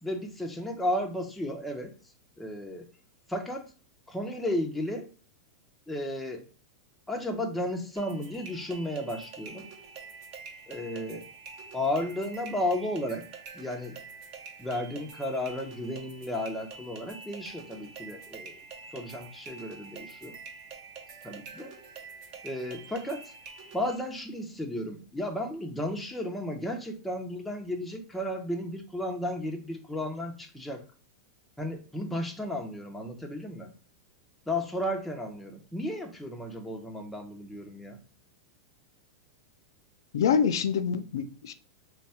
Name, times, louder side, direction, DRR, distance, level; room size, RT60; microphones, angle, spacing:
voice 1, 0.0-1.9 2.4-2.9 3.3-3.7 4.1-5.1 5.9-6.5 7.1-9.7 10.7-11.3 11.7-13.3 13.5-14.0 14.6-18.6 18.9-20.3 21.2-21.7 22.4-23.3 23.7-30.8 31.6-33.7 34.5-38.0, left 1 dB, 5° left, 0.6 m, -33 dB
sound 1, 8.0-24.0, right 5 dB, 40° right, 0.8 m, -46 dB
voice 2, 40.1-41.5, left 7 dB, 85° left, 0.4 m, -26 dB
3.2 x 2.2 x 4.2 m
supercardioid pair, 140°, 2 cm